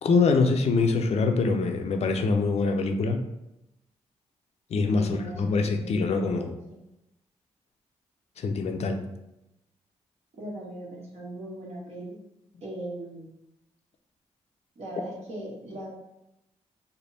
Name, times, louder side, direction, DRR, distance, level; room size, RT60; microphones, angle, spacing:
voice 1, 0.0-3.2 4.7-6.5 8.4-9.0, left 4 dB, 60° left, 5 dB, 0.5 m, -24 dB
voice 2, 4.8-6.8 10.4-12.2 12.6-13.3 14.7-15.9, right 1 dB, 60° right, -4 dB, 1.4 m, -39 dB
3.4 x 2.2 x 3.9 m, 0.87 s
cardioid pair, 65°, 12 cm